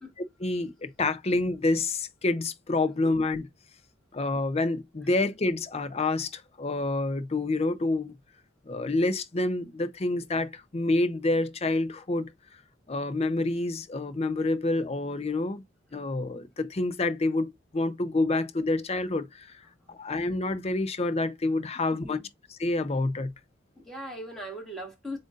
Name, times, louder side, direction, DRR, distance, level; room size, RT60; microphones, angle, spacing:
voice 1, 0.4-3.4 4.1-8.1 8.7-12.3 12.9-15.6 15.9-19.5 19.9-22.2 22.6-23.3, left 2 dB, 35° left, 0.6 m, -28 dB
voice 2, 19.6-20.0 21.9-22.3 23.8-25.2, equal, ahead, 2.0 m, -40 dB
7.6 x 2.6 x 2.4 m
head